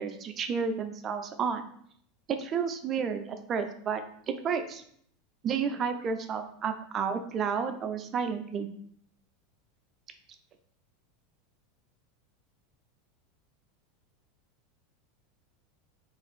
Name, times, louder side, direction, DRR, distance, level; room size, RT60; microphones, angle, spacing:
voice 1, 0.0-1.6 2.3-4.8 5.4-8.7, right 6 dB, 35° right, 7 dB, 0.4 m, -31 dB
2.6 x 2.4 x 4.0 m, 0.65 s
hypercardioid pair, 90°, 0 cm